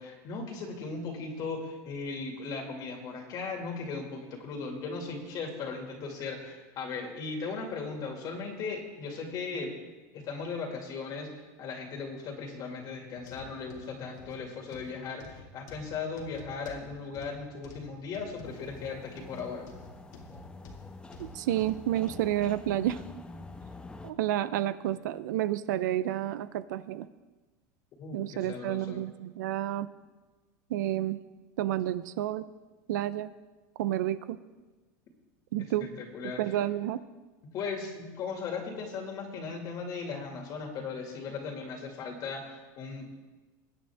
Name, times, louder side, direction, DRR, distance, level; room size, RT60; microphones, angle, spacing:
voice 1, 0.0-9.8 10.1-11.3 11.6-19.7 28.0-29.0 35.8-36.6 37.5-43.2, left 4 dB, 45° left, 2 dB, 2.3 m, -37 dB
sound 1, 13.2-22.3 22.8-23.0 23.6-23.7, left 2 dB, 85° left, 2.2 m, -49 dB
sound 2, 18.4-24.1, left 3 dB, 10° left, 0.8 m, -47 dB
voice 2, 21.2-23.0 24.0-27.1 28.1-29.9 30.7-31.2 31.6-32.4 32.9-33.3 33.8-34.4 35.5-35.9 36.4-37.0, right 13 dB, 90° right, 15 dB, 0.6 m, -30 dB
21.0 x 8.8 x 3.6 m, 1.2 s
supercardioid pair, 135°, 10 cm